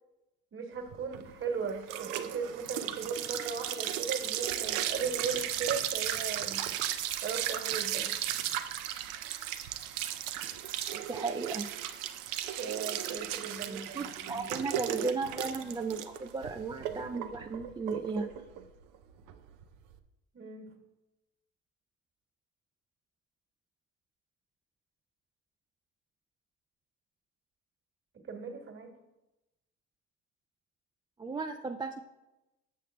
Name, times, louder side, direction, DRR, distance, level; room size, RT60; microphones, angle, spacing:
voice 1, 0.5-6.6 7.2-8.1 12.5-14.4 20.3-20.7 28.3-28.9, right 5 dB, 40° right, 3 dB, 1.4 m, -37 dB
sound 1, 0.9-19.9, right 11 dB, 85° right, 0.6 m, -36 dB
voice 2, 10.9-11.7 13.7-18.3 31.2-32.0, right 4 dB, 15° right, 5 dB, 0.3 m, -35 dB
6.6 x 6.5 x 3.3 m, 0.98 s
supercardioid pair, 80°, 32 cm